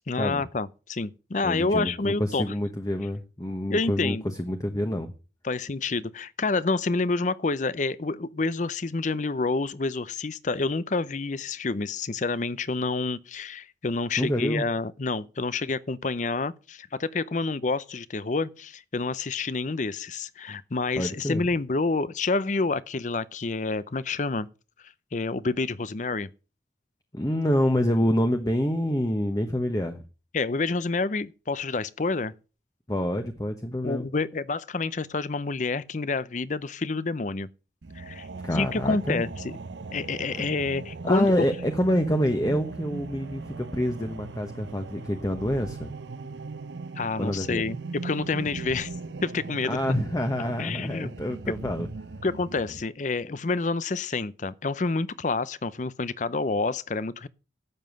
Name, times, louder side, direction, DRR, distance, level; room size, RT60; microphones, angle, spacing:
voice 1, 0.1-2.4 3.7-4.3 5.4-24.5 25.1-26.3 30.3-32.3 33.8-37.5 38.0-39.5 39.9-41.5 47.0-48.9 49.2-49.8 50.6-51.1 52.2-57.3, left 3 dB, 45° left, 0.6 m, -28 dB
voice 2, 1.4-5.1 14.2-14.6 21.0-21.4 27.1-30.0 32.9-34.1 38.4-39.2 40.3-40.5 41.0-45.9 47.2-47.6 49.7-51.9, equal, 20° left, 1.0 m, -27 dB
sound 1, 37.8-52.8, right 3 dB, 90° right, 0.7 m, -39 dB
sound 2, 45.0-46.6 48.0-49.7 51.3-52.8, right 1 dB, 60° right, 1.1 m, -44 dB
12.0 x 7.8 x 6.4 m
head